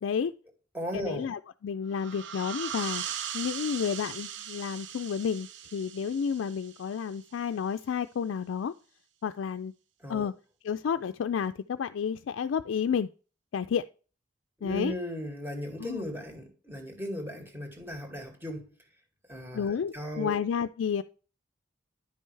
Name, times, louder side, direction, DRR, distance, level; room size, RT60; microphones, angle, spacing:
voice 1, 0.0-0.3 0.9-3.0 3.3-8.7 9.2-9.7 10.1-10.3 10.6-13.1 13.5-13.8 14.6-14.9 15.8-16.1 19.5-21.0, left 7 dB, 80° left, 0.4 m, -31 dB
voice 2, 0.7-1.3 10.0-10.3 14.6-18.7 19.3-20.4, equal, 10° right, 2.1 m, -37 dB
sound 1, 1.9-7.3, right 9 dB, 70° right, 0.7 m, -39 dB
10.5 x 5.4 x 3.2 m
head